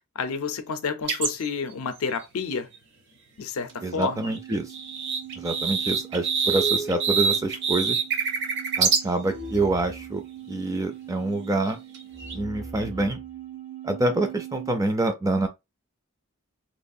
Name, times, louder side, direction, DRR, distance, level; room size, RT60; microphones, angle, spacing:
voice 1, 0.2-2.7 3.4-4.3, left 5 dB, 75° left, 0.5 m, -29 dB
sound 1, 1.1-1.5 3.7-3.8 4.0-9.0 11.7-12.3, right 6 dB, 50° right, 0.7 m, -25 dB
sound 2, 3.7-14.9, right 6 dB, 85° right, 1.2 m, -40 dB
voice 2, 3.8-4.7 5.4-8.0 8.8-11.8 12.3-13.2 13.8-15.5, right 2 dB, 15° right, 0.3 m, -26 dB
3.0 x 2.3 x 2.6 m
head